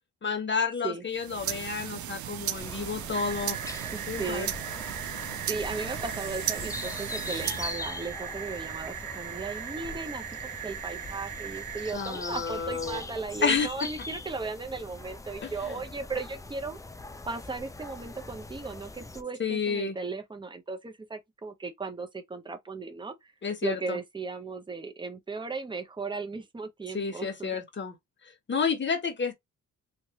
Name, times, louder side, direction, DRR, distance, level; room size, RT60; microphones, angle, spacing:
voice 1, 0.2-3.6 4.1-4.5 11.9-13.0 13.4-13.7 15.4-15.8 19.4-20.0 23.4-24.0 26.9-27.9 28.2-29.3, left 5 dB, 35° left, 1.0 m, -30 dB
sound 1, 1.1-7.8, right 12 dB, 65° right, 0.5 m, -36 dB
sound 2, 2.5-19.2, left 2 dB, 10° left, 0.4 m, -42 dB
sound 3, 3.1-11.9, right 9 dB, 85° right, 0.9 m, -39 dB
voice 2, 3.9-4.5 5.4-16.8 17.3-23.3 23.6-27.5, right 4 dB, 15° right, 0.8 m, -36 dB
3.2 x 2.5 x 2.8 m
cardioid pair, 95°, 32 cm